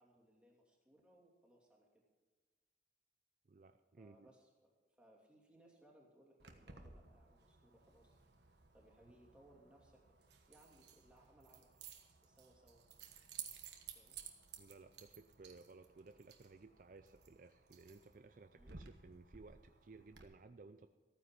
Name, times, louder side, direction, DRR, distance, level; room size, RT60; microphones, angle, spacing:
voice 1, 0.0-2.1 4.0-8.2 8.7-11.7 12.2-12.8 13.9-14.2 18.5-18.7, right 1 dB, 5° right, -2 dB, 2.7 m, -67 dB
voice 2, 3.5-4.3 14.6-20.9, right 3 dB, 45° right, 9 dB, 0.4 m, -58 dB
Keys jangling, 6.4-20.2, right 7 dB, 75° right, 1.4 m, -57 dB
14.5 x 9.6 x 5.9 m, 1.4 s
head